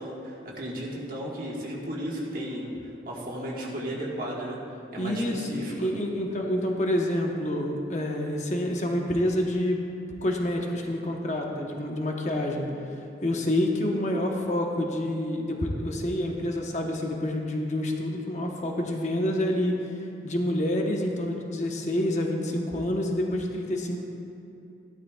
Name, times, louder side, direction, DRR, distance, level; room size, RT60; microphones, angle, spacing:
voice 1, 0.0-2.7 3.0-4.6 4.9-5.9, right 1 dB, 50° right, -4 dB, 1.5 m, -34 dB
voice 2, 5.0-9.8 10.2-12.7 13.2-19.8 20.2-24.0, left 1 dB, 40° left, 1 dB, 1.0 m, -28 dB
14.5 x 12.0 x 2.3 m, 2.7 s
head